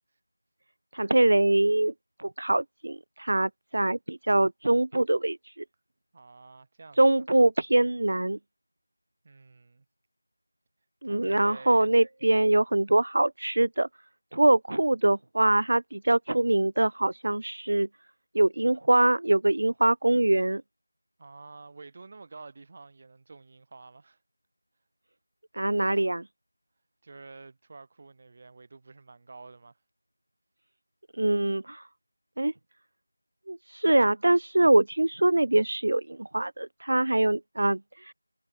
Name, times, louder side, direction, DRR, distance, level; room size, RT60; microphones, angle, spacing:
voice 1, 0.9-1.9 2.2-5.6 7.0-8.4 11.0-13.9 14.3-17.9 18.3-20.6 25.5-26.2 31.2-31.8 32.4-32.5 33.5-38.1, right 1 dB, 55° right, 0.4 m, -23 dB
voice 2, 6.1-7.3 9.2-9.9 11.0-11.9 21.2-24.2 27.0-29.7, right 3 dB, 30° right, 1.8 m, -49 dB
figure-of-eight pair, 175°, 0 cm